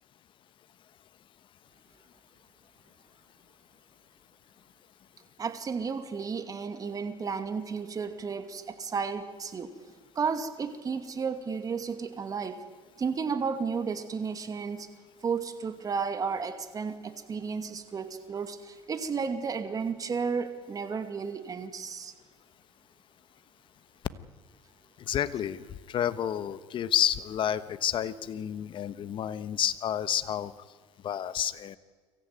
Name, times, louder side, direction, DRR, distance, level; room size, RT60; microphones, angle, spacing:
voice 1, 5.4-9.7 10.2-12.6 13.0-14.9 15.2-22.1, right 5 dB, 30° right, 8 dB, 2.4 m, -33 dB
voice 2, 25.0-30.5 31.0-31.8, left 10 dB, 45° left, 14 dB, 1.2 m, -30 dB
24.0 x 15.0 x 9.3 m, 1.5 s
supercardioid pair, 100°, 12 cm